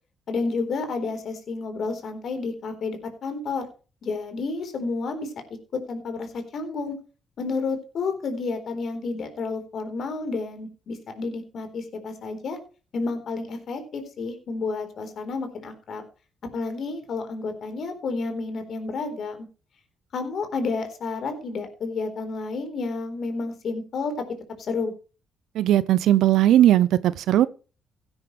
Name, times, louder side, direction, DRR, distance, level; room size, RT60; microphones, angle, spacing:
voice 1, 0.3-3.7 4.0-5.3 5.7-7.0 7.4-12.6 12.9-16.0 16.4-19.5 20.1-24.1 24.6-24.9, left 4 dB, 60° left, 4.0 m, -30 dB
voice 2, 25.5-27.5, right 12 dB, 80° right, 0.5 m, -18 dB
16.0 x 9.8 x 3.3 m
cardioid pair, 90°, 0 cm